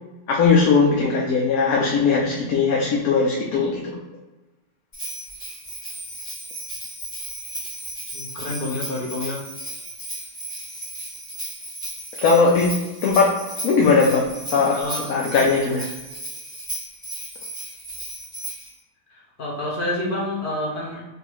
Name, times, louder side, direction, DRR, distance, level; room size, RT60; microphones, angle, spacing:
voice 1, 0.3-4.0 12.2-12.7 13.0-13.3 13.6-15.9, left 4 dB, 70° left, -3 dB, 1.1 m, -19 dB
Bell, 4.9-18.7, right 1 dB, 25° left, 1.4 m, -35 dB
voice 2, 8.1-9.5 14.8-15.0 19.4-21.0, left 1 dB, 45° left, -2 dB, 0.8 m, -28 dB
3.4 x 2.6 x 4.5 m, 1.1 s
omnidirectional pair, 1.6 m